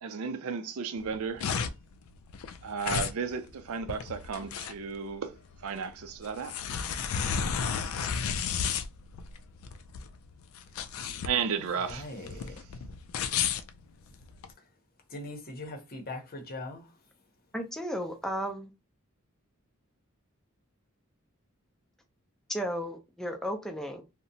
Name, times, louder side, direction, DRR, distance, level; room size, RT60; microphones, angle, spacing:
voice 1, 0.0-1.5 2.6-5.4 5.6-6.6 11.2-12.4, right 6 dB, 80° right, 0.4 m, -34 dB
sound 1, 1.0-14.5, left 7 dB, 75° left, 0.3 m, -33 dB
voice 2, 11.6-12.5 15.1-16.9, left 2 dB, 45° left, 0.7 m, -41 dB
voice 3, 17.5-18.7 22.5-24.0, equal, ahead, 0.4 m, -34 dB
2.8 x 2.1 x 2.6 m
head